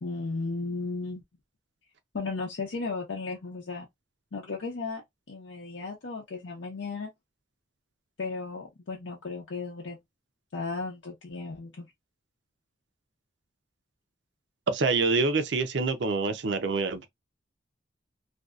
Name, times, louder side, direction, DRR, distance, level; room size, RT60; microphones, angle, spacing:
voice 1, 0.0-1.2 2.1-3.9 4.3-5.0 5.3-7.1 8.2-10.0 10.5-11.9, left 3 dB, 80° left, 0.6 m, -35 dB
voice 2, 14.7-17.1, right 4 dB, 65° right, 0.5 m, -26 dB
2.6 x 2.3 x 2.3 m
head